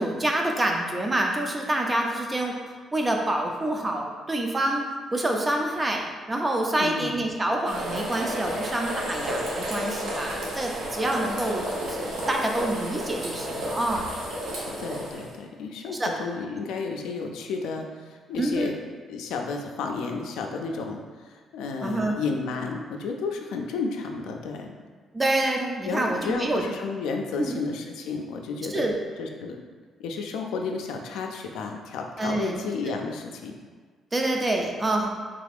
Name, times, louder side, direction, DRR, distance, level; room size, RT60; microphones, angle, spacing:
voice 1, 0.0-2.6 2.9-4.8 5.1-6.0 6.3-14.1 16.0-16.1 18.4-18.7 21.8-22.2 25.1-26.6 27.4-27.6 28.7-29.0 32.2-32.6 32.8-33.0 34.1-35.1, right 1 dB, 20° right, 1 dB, 0.5 m, -27 dB
voice 2, 6.8-7.3 14.8-18.7 19.1-21.0 21.3-24.7 25.8-28.9 29.2-29.6 30.0-33.5, left 4 dB, 90° left, 2 dB, 0.3 m, -32 dB
sound 1, 7.6-15.3, equal, 85° right, 0.8 m, -32 dB
3.5 x 2.4 x 3.4 m, 1.5 s
cardioid pair, 90°, 0 cm